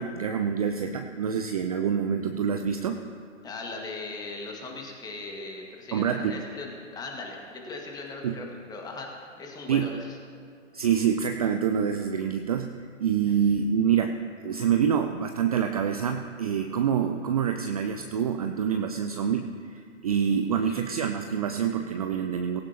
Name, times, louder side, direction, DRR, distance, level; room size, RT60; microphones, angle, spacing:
voice 1, 0.0-3.0 5.9-6.4 8.2-8.4 9.7-9.9 10.7-22.6, right 7 dB, 30° right, 6 dB, 0.5 m, -26 dB
voice 2, 3.4-10.2 13.3-13.4 20.5-20.8, left 3 dB, 10° left, 0 dB, 1.7 m, -39 dB
17.5 x 16.0 x 2.9 m, 2.3 s
figure-of-eight pair, 130°, 38 cm